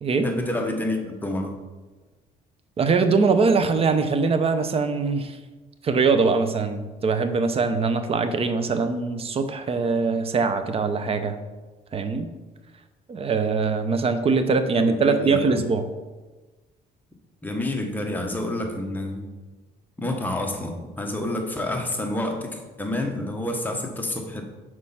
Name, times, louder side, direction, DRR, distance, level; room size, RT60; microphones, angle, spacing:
voice 1, 0.2-1.5 14.8-15.6 17.4-19.3 20.0-24.4, left 1 dB, 10° left, 2 dB, 1.1 m, -28 dB
voice 2, 2.8-5.4 5.8-11.4 11.9-12.3 13.1-15.8, right 4 dB, 35° right, 9 dB, 0.7 m, -22 dB
6.4 x 4.5 x 5.7 m, 1.2 s
cardioid pair, 110°, 17 cm